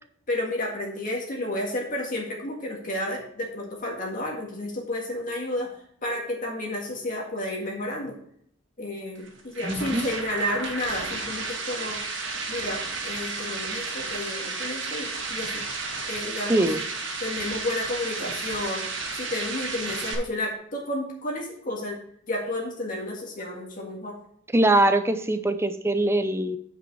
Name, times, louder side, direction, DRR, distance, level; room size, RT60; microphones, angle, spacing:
voice 1, 0.3-5.7 6.0-8.2 8.8-12.0 12.5-15.6 16.1-16.9 17.2-18.9 19.2-22.0 22.3-24.2, left 1 dB, 40° left, -1 dB, 1.8 m, -31 dB
sound 1, 9.2-20.2, right 3 dB, 60° right, 1.8 m, -32 dB
voice 2, 9.6-10.0 16.5-16.8 24.5-26.6, right 1 dB, 15° right, 10 dB, 0.5 m, -22 dB
8.9 x 5.1 x 4.6 m, 0.66 s
head